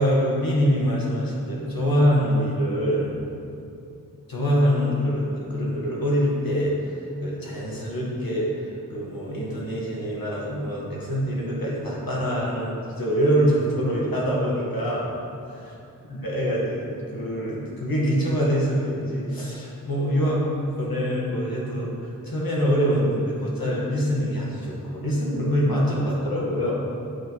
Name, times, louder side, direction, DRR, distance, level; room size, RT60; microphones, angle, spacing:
voice 1, 0.0-3.1 4.3-15.1 15.5-15.6 16.1-20.5 20.8-26.7, equal, 90° left, -5 dB, 1.5 m, -24 dB
8.3 x 4.0 x 4.5 m, 2.6 s
wide cardioid pair, 50°, 34 cm